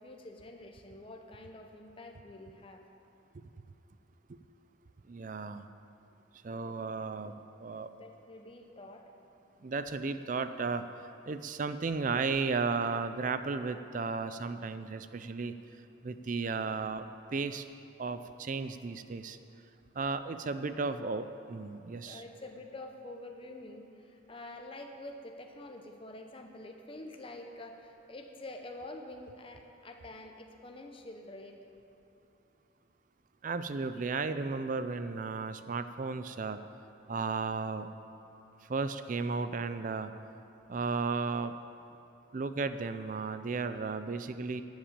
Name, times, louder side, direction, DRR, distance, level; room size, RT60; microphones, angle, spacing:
voice 1, 0.0-2.8 8.0-9.1 22.1-31.6, left 2 dB, 25° left, 3 dB, 0.8 m, -47 dB
voice 2, 5.1-5.7 6.4-7.3 7.6-7.9 9.6-10.9 11.3-15.5 16.0-17.1 17.3-17.6 18.0-19.4 20.0-22.2 33.4-36.6 37.1-37.9 38.7-40.1 40.7-41.5 42.3-44.6, right 4 dB, 40° right, 11 dB, 0.4 m, -34 dB
12.5 x 7.3 x 8.7 m, 2.7 s
head